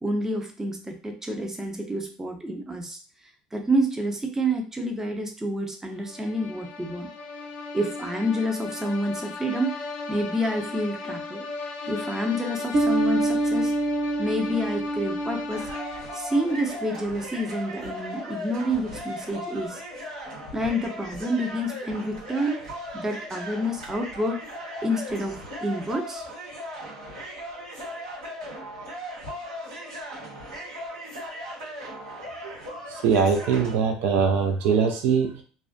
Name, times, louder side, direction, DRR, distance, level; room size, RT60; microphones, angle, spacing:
voice 1, 0.0-3.0 3.5-7.1 7.7-9.7 10.1-11.4 11.9-13.7 14.2-15.7 16.1-19.8 20.5-24.5 24.8-26.2, equal, 15° right, 3 dB, 0.6 m, -28 dB
sound 1, 6.0-17.0, left 3 dB, 55° left, 0.5 m, -36 dB
Bass guitar, 12.7-16.2, right 1 dB, 50° right, 0.8 m, -26 dB
sound 2, 15.5-33.8, equal, 90° right, 1.2 m, -38 dB
voice 2, 32.9-35.4, right 6 dB, 65° right, 4 dB, 0.4 m, -22 dB
2.3 x 2.2 x 2.5 m, 0.38 s
hypercardioid pair, 75°, 3 cm